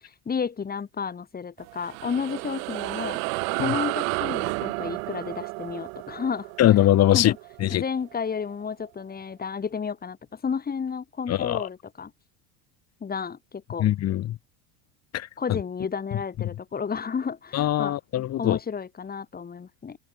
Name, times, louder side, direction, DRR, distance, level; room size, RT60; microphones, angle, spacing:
voice 1, 0.0-3.2 3.6-6.7 7.1-7.4 7.7-12.1 13.0-13.9 15.4-18.0 18.4-20.0, left 6 dB, 20° left, 5.9 m, -32 dB
sound 1, 1.6-8.4, right 36 dB, 70° right, 5.2 m, -32 dB
voice 2, 6.6-7.3 7.6-7.8 11.3-11.7 13.8-14.3 15.1-15.3 17.5-18.6, left 13 dB, 40° left, 1.6 m, -21 dB
supercardioid pair, 120°, 40 cm